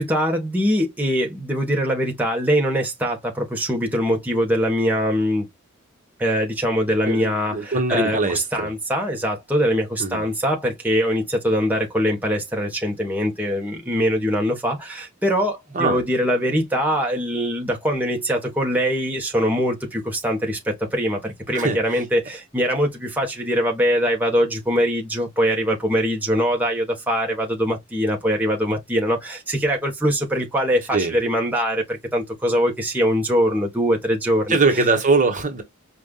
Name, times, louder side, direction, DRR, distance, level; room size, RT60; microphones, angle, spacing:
voice 1, 0.0-5.5 6.2-34.6, equal, 10° right, 1.1 m, -22 dB
voice 2, 7.1-8.7 10.0-10.3 15.7-16.0 21.5-22.0 30.9-31.2 34.5-35.6, right 3 dB, 40° right, 1.1 m, -22 dB
5.2 x 2.5 x 2.3 m
head